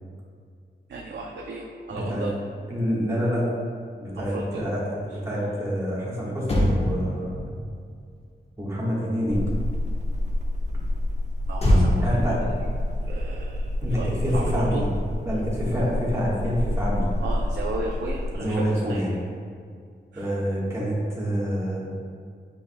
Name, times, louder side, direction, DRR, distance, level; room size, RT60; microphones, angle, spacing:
voice 1, 0.9-2.3 4.2-4.7 11.5-12.4 13.1-13.6 13.9-14.8 17.2-19.1 20.1-20.3, right 3 dB, 80° right, -1 dB, 0.6 m, -34 dB
voice 2, 1.9-2.3 2.7-3.4 4.0-7.6 8.6-9.4 12.0-12.4 13.8-14.9 15.2-17.0 18.3-19.1 20.1-21.9, equal, 15° right, -7 dB, 1.5 m, -27 dB
Motor vehicle (road), 6.0-6.1 6.4-9.9 11.6-14.2 14.4-14.7, left 1 dB, 35° left, 1.0 m, -26 dB
sound 1, 9.3-18.4, left 1 dB, 40° right, 0.7 m, -28 dB
9.0 x 4.7 x 2.3 m, 2.2 s
wide cardioid pair, 140°, 18 cm